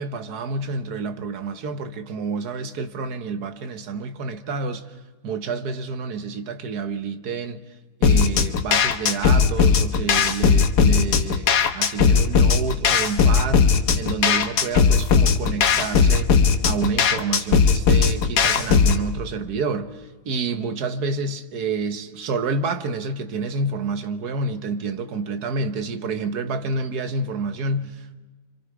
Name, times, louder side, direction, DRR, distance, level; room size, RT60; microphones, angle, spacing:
voice 1, 0.0-5.0 5.2-7.8 8.0-28.2, right 4 dB, 75° right, 1.7 m, -28 dB
sound 1, 8.0-19.0, left 6 dB, 80° left, 1.7 m, -18 dB
28.0 x 25.5 x 4.8 m
omnidirectional pair, 1.7 m